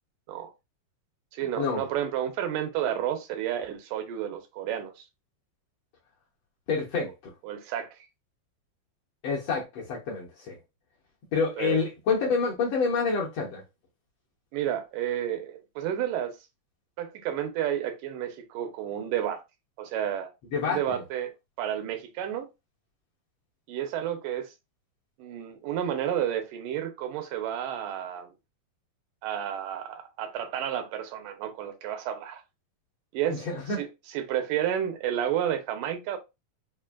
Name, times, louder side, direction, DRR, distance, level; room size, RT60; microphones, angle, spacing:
voice 1, 1.3-5.0 7.4-7.9 11.6-11.8 14.5-16.3 17.0-19.4 19.8-20.3 20.6-21.3 21.6-22.5 23.7-24.5 25.2-28.3 29.2-32.4 33.1-33.4 33.8-36.2, right 10 dB, 85° right, 2.3 m, -31 dB
voice 2, 6.7-7.3 9.2-10.6 11.3-13.6 20.5-21.0 33.4-33.8, left 5 dB, 70° left, 1.7 m, -28 dB
5.3 x 2.5 x 2.4 m
omnidirectional pair, 3.7 m